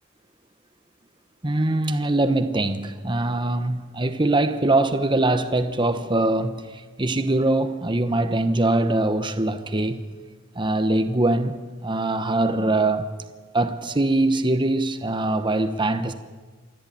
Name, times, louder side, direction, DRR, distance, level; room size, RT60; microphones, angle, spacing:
voice 1, 1.4-10.0 10.6-13.1 13.5-16.1, right 2 dB, 25° right, 0.9 m, -22 dB
27.0 x 11.5 x 8.8 m
head